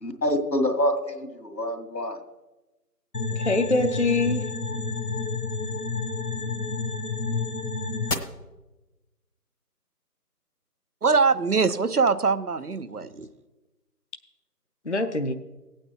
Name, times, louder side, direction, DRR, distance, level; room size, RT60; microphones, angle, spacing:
voice 1, 0.0-2.2, equal, 85° left, 5 dB, 2.2 m, -26 dB
sound 1, 3.1-8.1, left 3 dB, 70° left, 1.4 m, -29 dB
voice 2, 3.3-4.5 14.8-15.3, left 2 dB, 45° left, 7 dB, 0.6 m, -24 dB
voice 3, 11.0-13.3, right 4 dB, 65° right, 13 dB, 0.8 m, -23 dB
16.0 x 8.8 x 4.6 m, 1.1 s
figure-of-eight pair, 165°, 48 cm